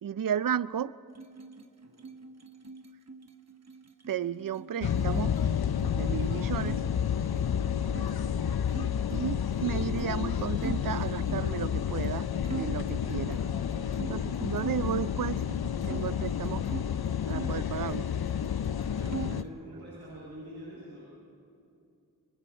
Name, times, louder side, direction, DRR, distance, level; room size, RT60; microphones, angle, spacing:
voice 1, 0.0-0.9 4.1-5.4 5.9-6.8 9.1-12.3 12.6-13.4 14.0-15.4 15.9-16.6 17.3-18.1, right 9 dB, 60° right, 17 dB, 0.5 m, -33 dB
sound 1, 1.1-6.8 7.1-8.1 8.7-11.6 12.0-12.2 12.4-14.9 15.2-16.9 17.3-18.4 18.6-19.5, right 4 dB, 45° right, 1.0 m, -43 dB
sound 2, 4.8-19.4, left 8 dB, 70° left, 0.7 m, -30 dB
voice 2, 18.6-21.0, equal, 80° right, -8 dB, 7.6 m, -46 dB
29.0 x 22.5 x 4.4 m, 2.6 s
wide cardioid pair, 50°, 38 cm